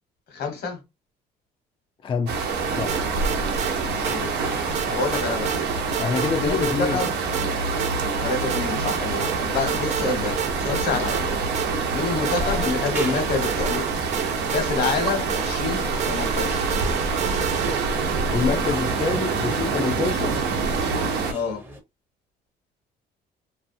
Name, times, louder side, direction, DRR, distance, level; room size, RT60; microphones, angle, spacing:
voice 1, 0.3-0.8 3.8-4.3 4.9-5.5 6.4-7.1 8.2-11.4 11.9-13.9 14.5-16.7 21.3-21.6, left 4 dB, 75° left, 1.2 m, -28 dB
voice 2, 2.0-2.4 2.7-2.9 6.0-7.0 18.3-20.4, left 5 dB, 30° left, 0.4 m, -26 dB
sound 1, 2.3-21.3, right 4 dB, 85° right, 0.8 m, -26 dB
sound 2, 2.9-3.7 4.0-4.2 4.7-5.6 5.9-6.3 6.6-7.5 7.8-7.9 8.5-9.4 9.7-10.1 10.4-11.9 12.2-18.0, right 10 dB, 45° right, 0.4 m, -32 dB
sound 3, 3.2-21.8, equal, 10° right, 0.7 m, -41 dB
2.7 x 2.3 x 2.6 m
cardioid pair, 110°, 17 cm